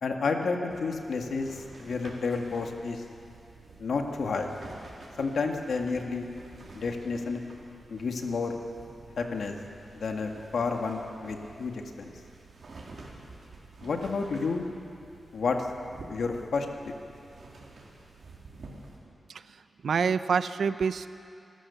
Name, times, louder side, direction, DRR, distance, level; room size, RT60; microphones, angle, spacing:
voice 1, 0.0-3.0 3.8-4.5 5.2-6.3 6.7-7.4 7.9-8.6 9.2-9.6 9.9-12.1 13.8-14.7 15.3-15.7 16.1-16.9, left 4 dB, 75° left, 3 dB, 1.9 m, -30 dB
sound 1, 0.7-19.0, right 3 dB, 60° right, 3.7 m, -49 dB
voice 2, 19.3-21.1, right 6 dB, 80° right, 12 dB, 0.6 m, -28 dB
27.0 x 14.0 x 7.0 m, 2.6 s
wide cardioid pair, 120°, 0 cm